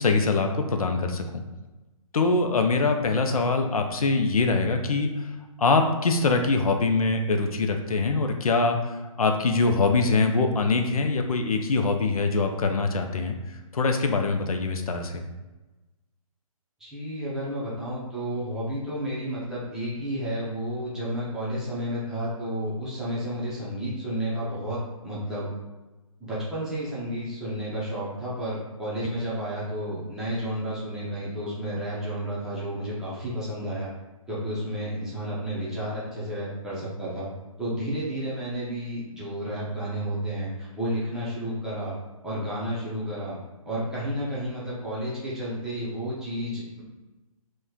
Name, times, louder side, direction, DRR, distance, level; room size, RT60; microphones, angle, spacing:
voice 1, 0.0-1.4 2.1-5.3 5.6-13.4 13.7-15.2, left 3 dB, 75° left, 5 dB, 0.5 m, -23 dB
voice 2, 16.8-25.5 26.2-33.9 34.3-37.3 37.6-41.9 42.2-43.4 43.7-46.8, equal, 5° right, -10 dB, 0.6 m, -31 dB
3.0 x 2.2 x 3.6 m, 1.1 s
figure-of-eight pair, 145°, 19 cm